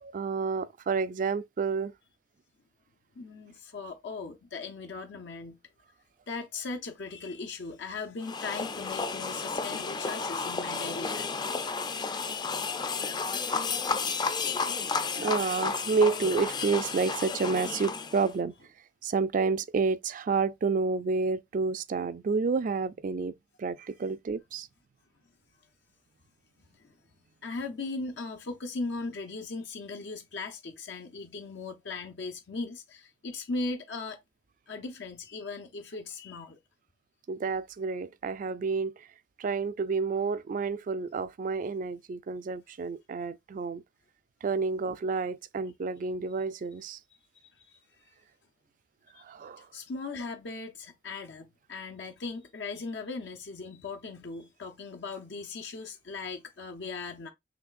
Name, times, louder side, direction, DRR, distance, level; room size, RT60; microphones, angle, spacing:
voice 1, 0.0-1.9 15.1-18.5 19.0-24.7 37.3-39.1 39.4-43.8 44.4-47.0 49.2-49.7, right 4 dB, 50° right, 0.4 m, -29 dB
voice 2, 3.2-5.6 6.3-11.3 26.7-26.9 27.4-34.2 34.7-36.6 47.3-47.8 49.1-49.3 49.6-57.3, left 3 dB, 75° left, 0.6 m, -38 dB
sound 1, 8.2-18.3, left 4 dB, 25° left, 0.4 m, -32 dB
6.0 x 3.1 x 2.5 m
head